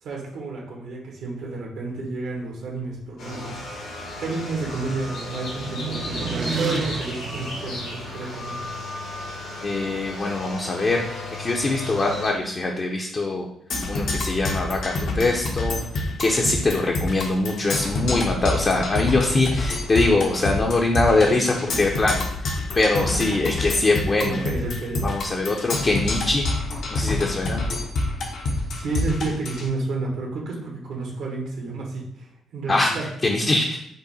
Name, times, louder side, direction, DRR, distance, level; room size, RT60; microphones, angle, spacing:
voice 1, 0.0-8.6 24.2-25.0 28.5-33.0, right 3 dB, 80° right, -1 dB, 1.4 m, -31 dB
sound 1, 3.2-12.3, left 2 dB, 85° left, 1.7 m, -35 dB
sound 2, 3.6-8.5, right 4 dB, 45° right, 0.5 m, -33 dB
voice 2, 9.6-13.5 13.9-15.8 16.2-22.2 22.7-24.5 25.0-26.5 26.9-27.7 32.7-33.8, left 2 dB, 35° left, 0 dB, 0.6 m, -23 dB
Percussion, 13.7-29.7, left 2 dB, 65° left, 0.8 m, -27 dB
5.3 x 2.1 x 4.1 m, 0.71 s
cardioid pair, 90°, 0 cm